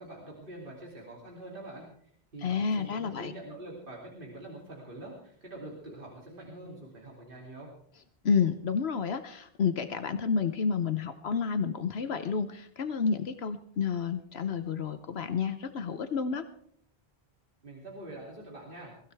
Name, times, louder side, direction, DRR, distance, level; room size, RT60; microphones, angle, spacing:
voice 1, 0.0-7.7 17.6-18.9, right 1 dB, 55° right, -3 dB, 3.2 m, -45 dB
voice 2, 2.4-3.3 8.2-16.4, left 6 dB, 75° left, 9 dB, 1.1 m, -30 dB
22.0 x 15.5 x 3.4 m, 0.66 s
omnidirectional pair, 1.1 m